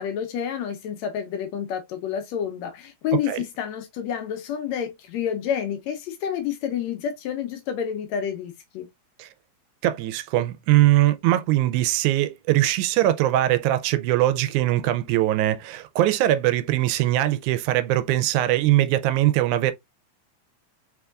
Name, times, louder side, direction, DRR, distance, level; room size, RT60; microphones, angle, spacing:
voice 1, 0.0-8.9, left 8 dB, 75° left, 1.8 m, -29 dB
voice 2, 9.8-19.7, right 14 dB, 85° right, 2.0 m, -21 dB
4.4 x 3.5 x 2.3 m
omnidirectional pair, 3.4 m